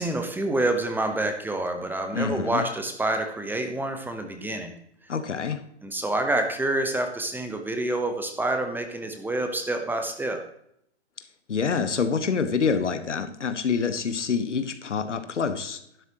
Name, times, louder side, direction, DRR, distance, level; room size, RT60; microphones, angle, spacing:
voice 1, 0.0-4.7 5.8-10.4, right 2 dB, 5° right, 6 dB, 1.0 m, -27 dB
voice 2, 2.1-2.6 5.1-5.6 11.5-15.8, left 5 dB, 85° left, 10 dB, 1.4 m, -26 dB
11.5 x 11.0 x 3.0 m, 0.72 s
hypercardioid pair, 120°, 35 cm